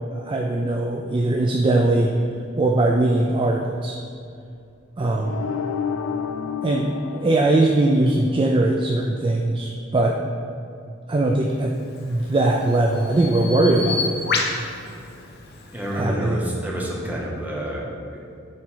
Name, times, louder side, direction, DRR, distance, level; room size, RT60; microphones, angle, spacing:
voice 1, 0.1-2.1 2.6-4.0 5.0-5.5 6.6-10.2 11.1-11.8 12.0-14.2 15.9-16.5, right 2 dB, 25° right, 1 dB, 0.4 m, -20 dB
sound 1, 5.3-8.2, left 7 dB, 90° left, 0.4 m, -30 dB
Bird vocalization bird call bird song, 11.8-16.1, left 4 dB, 55° left, 0.8 m, -30 dB
voice 2, 15.7-18.4, equal, 10° right, -4 dB, 1.1 m, -29 dB
9.7 x 3.6 x 4.6 m, 2.5 s
head